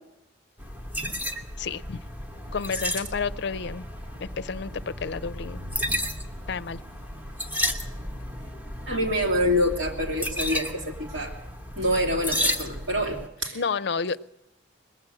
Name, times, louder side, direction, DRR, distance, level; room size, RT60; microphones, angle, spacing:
sound 1, 0.6-13.3, equal, 10° right, 1.1 m, -33 dB
voice 1, 1.6-2.0 2.5-3.9 4.2-5.6 6.5-6.8 13.5-14.2, left 5 dB, 60° left, 16 dB, 0.5 m, -30 dB
voice 2, 8.9-11.4 11.8-13.6, equal, 80° right, 2 dB, 2.6 m, -26 dB
20.5 x 7.8 x 8.8 m, 0.87 s
head